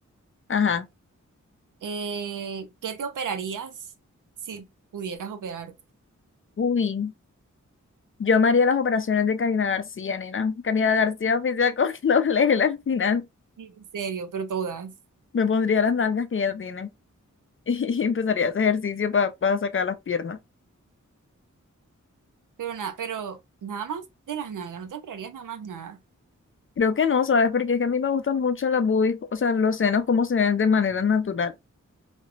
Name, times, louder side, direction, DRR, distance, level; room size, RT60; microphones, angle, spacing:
voice 1, 0.5-0.9 6.6-7.1 8.2-13.2 15.3-16.9 17.7-20.4 26.8-31.5, left 5 dB, 40° left, 0.4 m, -23 dB
voice 2, 1.8-3.9 4.4-5.7 13.6-14.9 22.6-26.0, right 6 dB, 80° right, 0.5 m, -33 dB
3.1 x 2.1 x 2.3 m
cardioid pair, 40°, 31 cm